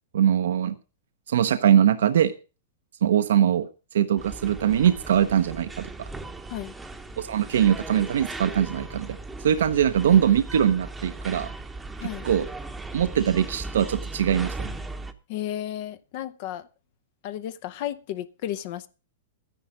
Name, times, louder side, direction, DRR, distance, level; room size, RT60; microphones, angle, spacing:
voice 1, 0.1-0.7 1.3-2.3 3.0-3.7 3.9-5.9 7.2-9.2 9.4-11.5 12.2-12.5 12.9-14.7, right 9 dB, 80° right, 0.9 m, -22 dB
sound 1, 4.2-15.1, right 2 dB, 5° right, 1.0 m, -38 dB
voice 2, 15.3-16.7 17.2-18.9, left 12 dB, 50° left, 0.8 m, -33 dB
12.5 x 10.5 x 5.1 m
hypercardioid pair, 150°, 0 cm